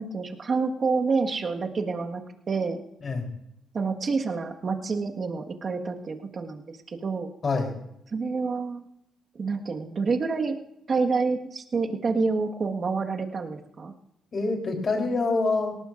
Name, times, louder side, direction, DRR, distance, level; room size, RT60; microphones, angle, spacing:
voice 1, 0.0-2.2 2.5-2.8 3.7-7.3 8.1-8.9 9.3-10.6 10.9-13.9, right 4 dB, 45° right, 3 dB, 1.6 m, -28 dB
voice 2, 7.4-7.8 14.3-15.8, left 3 dB, 40° left, 2 dB, 3.6 m, -26 dB
18.5 x 18.5 x 2.6 m, 0.80 s
cardioid pair, 90°, 0 cm